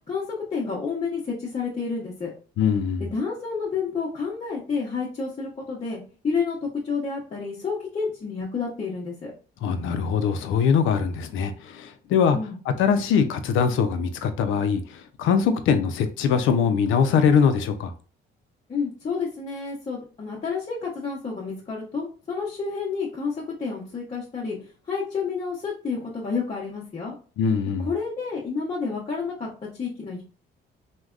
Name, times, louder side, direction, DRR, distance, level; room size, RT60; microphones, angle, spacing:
voice 1, 0.5-2.3 3.0-9.3 12.3-12.6 18.7-24.6 24.8-27.1 27.8-30.2, left 5 dB, 35° left, 0.8 m, -30 dB
voice 2, 2.6-3.0 9.6-12.4 12.8-17.9 27.4-27.9, left 6 dB, 85° left, 0.4 m, -22 dB
3.3 x 2.2 x 2.4 m
cardioid pair, 90°, 20 cm